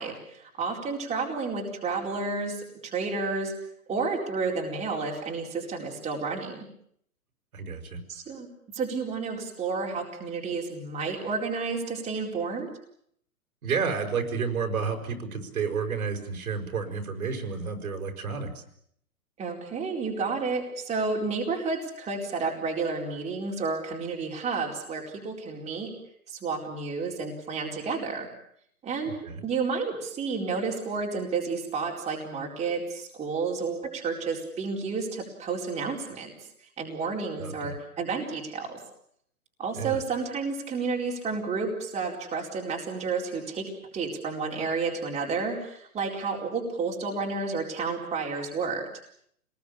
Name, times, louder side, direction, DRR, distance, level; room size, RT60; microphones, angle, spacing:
voice 1, 0.0-3.5 3.9-6.6 8.1-8.5 8.7-12.7 19.4-25.9 26.3-28.3 28.8-36.3 36.8-38.8 39.6-43.7 43.9-48.9, right 4 dB, 15° right, -1 dB, 4.4 m, -31 dB
voice 2, 7.5-8.0 13.6-18.6 29.0-29.4 37.4-37.7 39.8-40.0, right 5 dB, 70° right, 5 dB, 5.7 m, -31 dB
26.5 x 20.0 x 8.6 m, 0.68 s
hypercardioid pair, 135°, 45 cm